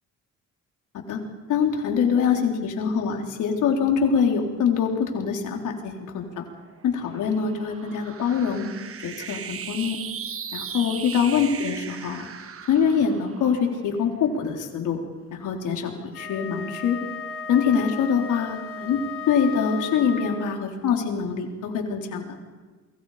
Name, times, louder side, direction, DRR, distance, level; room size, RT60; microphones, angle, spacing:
voice 1, 1.5-6.5 6.8-8.7 9.0-10.0 10.5-12.3 12.7-15.0 15.3-17.0 17.5-22.4, left 6 dB, 80° left, 2 dB, 4.1 m, -24 dB
sound 1, 6.2-14.8, right 7 dB, 50° right, 1.5 m, -38 dB
Wind instrument woodwind instrument, 16.1-20.7, left 5 dB, 45° left, 3.0 m, -36 dB
29.5 x 23.0 x 5.1 m, 1.4 s
cardioid pair, 90°, 30 cm